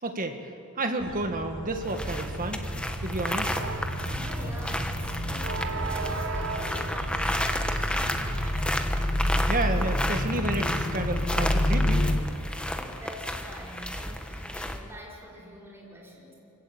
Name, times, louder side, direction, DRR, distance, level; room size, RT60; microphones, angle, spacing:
voice 1, 0.0-0.4 0.8-2.6 3.0-3.5 9.2-12.0, right 2 dB, 40° right, 6 dB, 1.8 m, -31 dB
sound 1, 1.0-8.6, right 3 dB, 65° right, 1.3 m, -36 dB
sound 2, 1.5-12.2, left 1 dB, 45° left, 1.7 m, -30 dB
sound 3, 1.8-14.8, left 1 dB, 5° left, 1.2 m, -32 dB
voice 2, 3.9-8.7 12.7-16.3, equal, 10° right, -4 dB, 5.2 m, -45 dB
24.5 x 15.5 x 8.7 m, 2.8 s
head